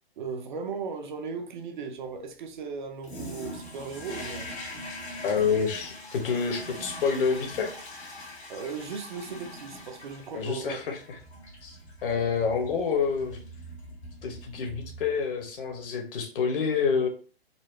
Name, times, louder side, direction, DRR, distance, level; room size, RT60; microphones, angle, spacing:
voice 1, 0.2-4.5 8.5-10.8, right 5 dB, 50° right, 0.7 m, -37 dB
Toilet flush, 3.0-15.4, left 1 dB, 80° left, 1.6 m, -42 dB
voice 2, 5.2-7.7 10.3-11.0 11.6-13.4 14.2-17.1, left 6 dB, 55° left, 1.0 m, -28 dB
4.0 x 2.2 x 3.1 m
hypercardioid pair, 130°, 32 cm